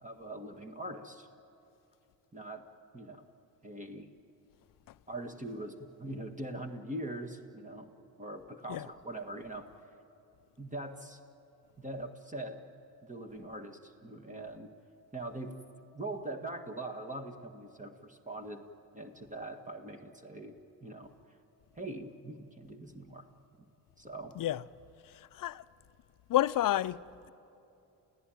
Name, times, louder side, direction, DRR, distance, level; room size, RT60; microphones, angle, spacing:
voice 1, 0.0-1.3 2.3-2.7 2.9-3.2 3.6-4.1 5.1-7.9 8.2-9.7 10.6-11.2 11.8-12.6 13.0-14.7 15.1-15.6 15.9-18.7 18.9-21.1 21.7-23.3 23.6-23.7 24.0-24.4, right 1 dB, 20° right, 1.8 m, -42 dB
voice 2, 25.0-25.6 26.3-27.3, left 13 dB, 55° left, 0.6 m, -31 dB
29.5 x 16.0 x 9.3 m
supercardioid pair, 65°, 39 cm